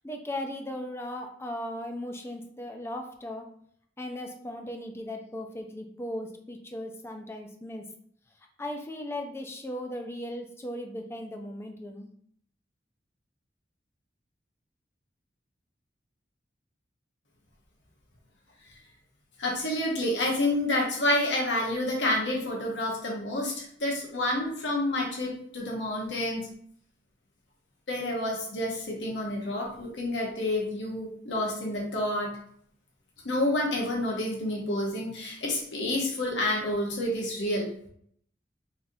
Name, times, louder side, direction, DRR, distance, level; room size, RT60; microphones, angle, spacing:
voice 1, 0.0-3.5 4.0-7.9 8.6-12.1, left 1 dB, 15° left, 3 dB, 0.5 m, -37 dB
voice 2, 19.4-26.5 27.9-32.3 33.2-37.7, left 1 dB, 75° left, -2 dB, 1.2 m, -29 dB
3.7 x 3.4 x 2.7 m, 0.63 s
head